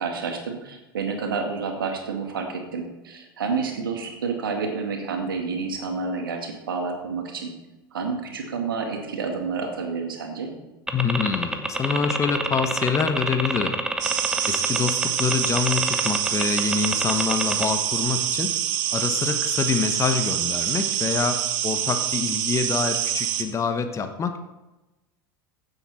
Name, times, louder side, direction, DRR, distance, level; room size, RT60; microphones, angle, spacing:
voice 1, 0.0-7.5 7.9-10.5, right 5 dB, 70° right, 3 dB, 2.1 m, -29 dB
voice 2, 10.9-13.8 14.5-18.5 18.9-24.4, left 6 dB, 25° left, 8 dB, 1.1 m, -26 dB
sound 1, 10.9-17.6, right 2 dB, 5° right, 1.2 m, -27 dB
sound 2, 14.0-23.4, right 11 dB, 55° right, 1.2 m, -26 dB
15.5 x 8.1 x 4.2 m, 1.0 s
figure-of-eight pair, 80°, 12 cm